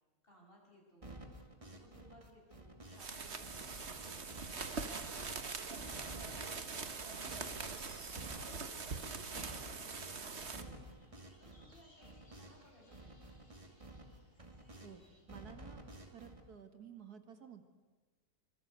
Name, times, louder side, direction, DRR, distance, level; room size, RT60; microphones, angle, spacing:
voice 1, 0.2-1.2 1.6-5.4 6.2-7.5 7.9-10.8 11.4-13.6, equal, 35° left, -1 dB, 7.6 m, -63 dB
sound 1, 1.0-3.1 3.4-5.4 5.8-12.7 12.9-15.0 15.3-16.4, right 1 dB, 20° right, 2.4 m, -53 dB
sound 2, 2.9-10.6, right 4 dB, 45° right, 1.7 m, -43 dB
sound 3, 3.4-15.2, left 1 dB, 50° left, 6.2 m, -66 dB
voice 2, 14.8-15.8 16.1-17.6, right 7 dB, 80° right, 8 dB, 2.4 m, -53 dB
26.0 x 24.5 x 8.1 m, 1.3 s
omnidirectional pair, 1.6 m